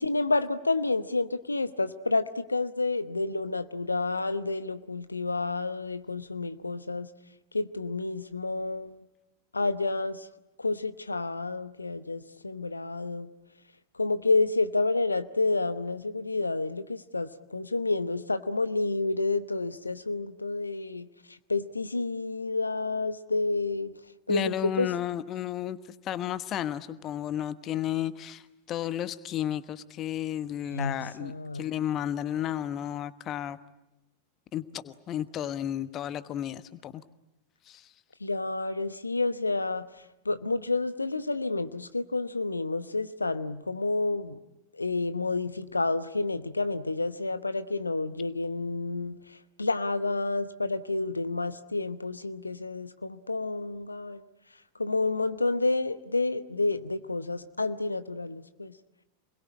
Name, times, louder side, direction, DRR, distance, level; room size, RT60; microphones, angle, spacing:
voice 1, 0.0-7.1 7.5-9.0 9.5-10.3 10.6-13.3 13.9-23.9 24.3-24.9 30.7-31.6 38.2-44.4 44.7-54.2 54.8-58.7, left 3 dB, 80° left, 12 dB, 0.9 m, -29 dB
voice 2, 24.3-25.8 26.0-33.6 34.5-37.0 37.7-37.8, left 11 dB, 30° left, 14 dB, 1.2 m, -33 dB
28.0 x 21.5 x 9.9 m, 0.94 s
figure-of-eight pair, 90°, 0 cm